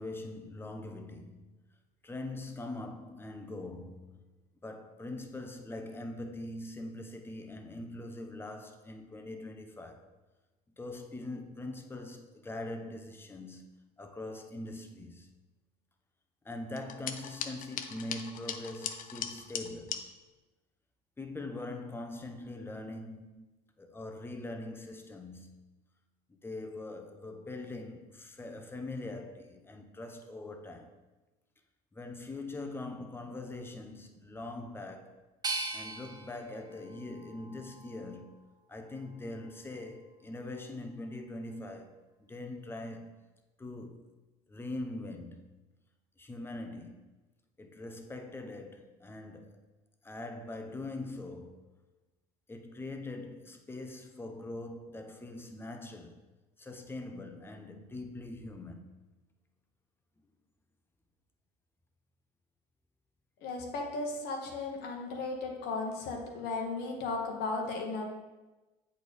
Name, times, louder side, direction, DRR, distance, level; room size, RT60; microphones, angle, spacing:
voice 1, 0.0-1.6 2.0-4.2 4.6-10.1 10.8-13.7 14.0-15.3 16.4-20.1 21.2-23.5 23.8-25.6 26.3-30.9 31.9-35.2 35.7-38.4 38.7-42.0 42.3-43.3 43.6-44.1 44.5-45.5 46.2-47.1 47.6-49.6 50.0-51.7 52.5-56.2 56.6-59.0, left 2 dB, 10° left, 0.7 m, -42 dB
sound 1, 16.8-20.0, left 8 dB, 50° left, 0.6 m, -39 dB
sound 2, 35.4-38.4 38.9-39.7, right 3 dB, 25° right, 0.7 m, -41 dB
voice 2, 63.4-68.1, left 3 dB, 65° left, 1.2 m, -35 dB
7.7 x 4.4 x 3.4 m
supercardioid pair, 90°, 18 cm